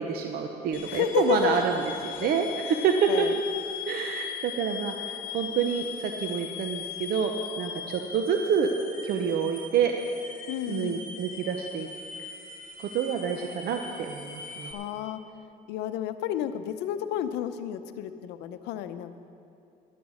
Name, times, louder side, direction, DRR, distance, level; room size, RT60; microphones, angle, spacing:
voice 1, 0.0-1.7 2.0-3.3 3.9-8.8 9.0-9.9 10.7-11.9 12.8-14.7, right 7 dB, 65° right, 4 dB, 0.9 m, -28 dB
sound 1, 0.7-14.7, left 7 dB, 55° left, 1.6 m, -40 dB
voice 2, 0.9-1.6 2.7-2.8 3.1-3.3 10.5-11.0 14.6-15.2 15.7-19.2, left 11 dB, 90° left, 11 dB, 0.7 m, -31 dB
11.5 x 10.0 x 6.4 m, 2.6 s
cardioid pair, 110°, 17 cm